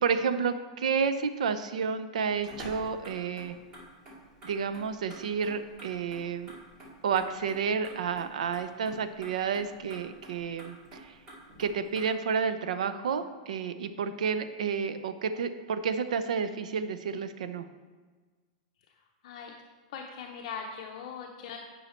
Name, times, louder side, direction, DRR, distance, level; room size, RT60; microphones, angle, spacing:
voice 1, 0.0-3.5 4.4-6.6 7.0-11.2 11.6-17.7, right 6 dB, 85° right, 10 dB, 0.7 m, -30 dB
Motor vehicle (road), 2.3-12.0, right 1 dB, 25° right, 2.5 m, -49 dB
voice 2, 19.2-19.6 19.9-21.6, left 6 dB, 55° left, 1 dB, 0.8 m, -40 dB
10.0 x 5.5 x 4.4 m, 1.4 s
supercardioid pair, 160°, 4 cm